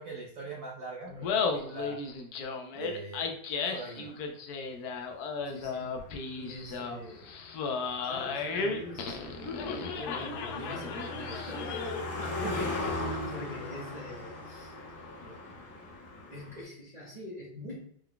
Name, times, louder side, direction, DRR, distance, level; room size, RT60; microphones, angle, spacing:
voice 1, 0.0-2.0 2.7-3.3 3.6-4.2 12.4-12.7, right 3 dB, 85° right, -3 dB, 0.7 m, -41 dB
Laughter, 1.1-12.1, left 4 dB, 90° left, 0.8 m, -34 dB
voice 2, 5.4-6.0 6.3-7.4 7.8-9.4 9.6-14.8 15.2-15.5 16.3-17.9, left 1 dB, 40° right, -7 dB, 0.5 m, -44 dB
Car passing by, 5.5-16.6, left 2 dB, 50° left, 1.5 m, -39 dB
4.6 x 2.2 x 3.7 m, 0.66 s
omnidirectional pair, 2.3 m